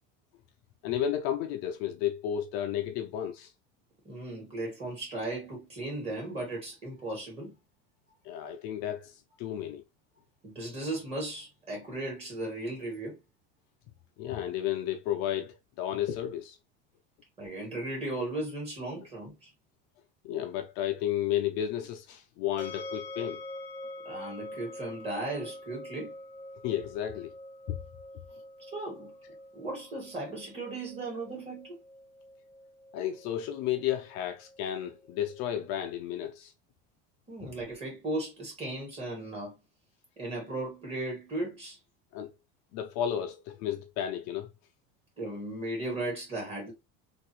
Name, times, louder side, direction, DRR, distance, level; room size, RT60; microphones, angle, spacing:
voice 1, 0.8-3.5 8.3-9.1 9.4-9.8 14.2-16.6 20.2-23.4 26.6-27.3 27.7-27.8 32.9-36.5 42.1-42.3 42.7-44.5, left 11 dB, 55° left, 0.6 m, -32 dB
voice 2, 4.0-7.6 10.4-13.2 17.4-19.5 24.0-26.1 28.7-29.1 29.5-31.8 37.3-39.6 40.2-41.8 45.2-46.7, right 2 dB, 20° right, 2.2 m, -36 dB
sound 1, 22.6-35.6, left 1 dB, 10° left, 0.6 m, -46 dB
3.4 x 2.6 x 3.0 m
cardioid pair, 145°, 30 cm